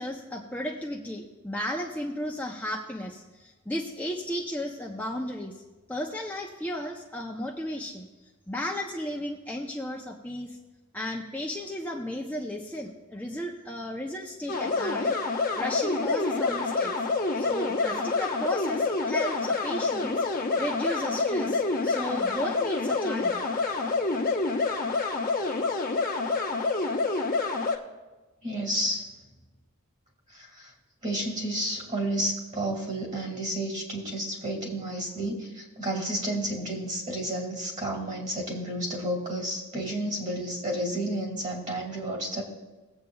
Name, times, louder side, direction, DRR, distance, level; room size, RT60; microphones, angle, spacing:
voice 1, 0.0-5.5 5.9-8.1 8.5-10.6 10.9-16.9 17.4-20.2 20.6-23.4, left 1 dB, 10° left, -1 dB, 0.7 m, -34 dB
sound 1, 14.5-27.8, left 3 dB, 40° left, 1.0 m, -27 dB
voice 2, 28.4-29.0 30.3-30.7 31.0-42.4, right 1 dB, 35° right, 0 dB, 2.4 m, -31 dB
21.0 x 8.1 x 2.4 m, 1.2 s
head